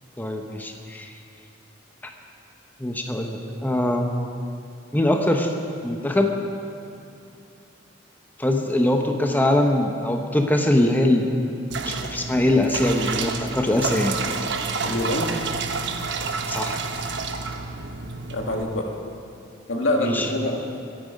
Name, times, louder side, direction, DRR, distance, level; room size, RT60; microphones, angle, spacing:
voice 1, 0.2-1.1 2.8-4.1 4.9-5.5 5.8-6.4 8.4-11.3 11.9-14.2 16.5-16.8 20.1-20.3, left 1 dB, 10° left, 3 dB, 0.8 m, -22 dB
sound 1, 11.7-18.6, right 4 dB, 65° right, 1.0 m, -29 dB
voice 2, 14.8-15.3 18.3-18.9 19.7-20.6, left 1 dB, 80° left, 1 dB, 1.8 m, -25 dB
23.5 x 9.1 x 5.2 m, 2.5 s
head